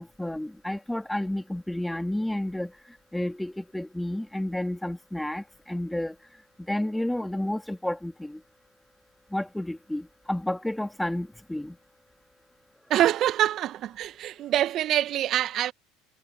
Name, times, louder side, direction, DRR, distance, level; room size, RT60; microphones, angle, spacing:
voice 1, 0.0-2.7 3.1-6.1 6.7-8.4 9.3-11.7, left 1 dB, 5° left, 3.4 m, -31 dB
voice 2, 12.9-15.7, right 12 dB, 50° right, 1.9 m, -25 dB
hypercardioid pair, 75°, 0 cm